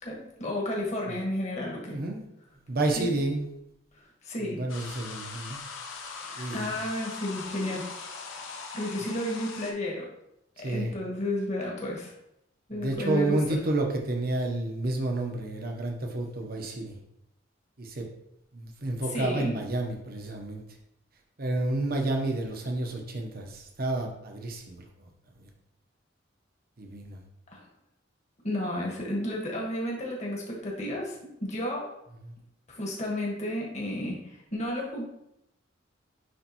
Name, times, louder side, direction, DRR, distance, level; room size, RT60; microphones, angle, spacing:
voice 1, 0.0-2.0 2.9-3.1 4.2-4.6 6.2-7.9 8.3-8.5 8.7-10.1 10.6-12.1 12.7-13.6 19.1-19.6 27.5-27.6 28.4-31.9 32.7-35.0, left 1 dB, 35° left, -2 dB, 1.5 m, -32 dB
voice 2, 1.9-2.2 2.7-3.5 4.4-5.6 6.4-6.7 10.6-10.9 12.8-16.9 17.8-18.1 18.5-20.6 21.4-25.1 25.4-25.5 26.8-27.2 32.2-32.3, right 2 dB, 50° right, 2 dB, 1.0 m, -30 dB
sound 1, 4.7-9.7, left 4 dB, 85° left, 0.8 m, -40 dB
9.5 x 3.2 x 3.0 m, 0.82 s
head